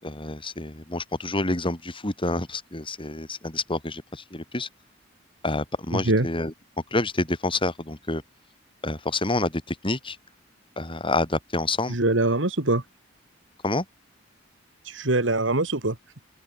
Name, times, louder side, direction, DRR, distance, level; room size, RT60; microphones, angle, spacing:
voice 1, 0.0-4.7 5.4-6.5 6.9-8.2 8.8-10.2 10.8-12.0 13.6-13.8, left 2 dB, 25° left, 4.4 m, -28 dB
voice 2, 5.9-6.3 11.9-12.8 14.9-16.0, right 2 dB, 70° right, 2.4 m, -23 dB
open air
head